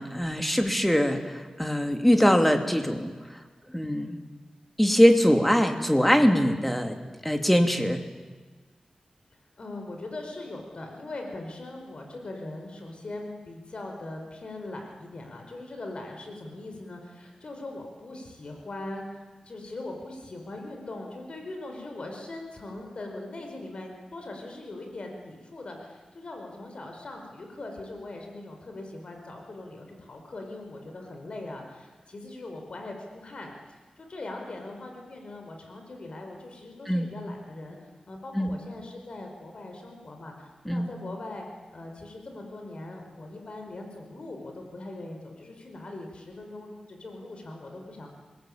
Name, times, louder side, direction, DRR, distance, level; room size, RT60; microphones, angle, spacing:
voice 1, 0.0-3.1 3.7-4.2 4.8-7.0 7.2-8.0 36.9-37.1 38.3-38.6 40.6-40.9, equal, 5° left, 5 dB, 2.9 m, -22 dB
voice 2, 9.6-37.8 38.1-41.5 41.7-48.1, left 2 dB, 60° left, 3 dB, 5.0 m, -40 dB
26.5 x 21.5 x 8.8 m, 1.4 s
wide cardioid pair, 75°, 2 cm